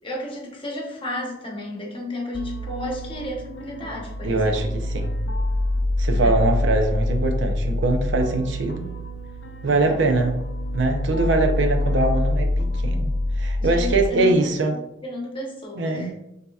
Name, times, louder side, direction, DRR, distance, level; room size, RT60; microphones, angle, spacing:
voice 1, 0.0-4.5 6.1-6.4 9.8-10.1 11.1-11.3 13.6-14.4 15.0-16.1, left 1 dB, 25° left, -1 dB, 0.9 m, -32 dB
sound 1, 2.3-14.1, left 1 dB, 70° left, 0.5 m, -26 dB
voice 2, 4.2-5.1 6.0-8.9 9.6-10.4 10.7-14.8 15.8-16.1, right 2 dB, 65° right, 4 dB, 0.6 m, -22 dB
7.2 x 2.8 x 2.3 m, 0.86 s
head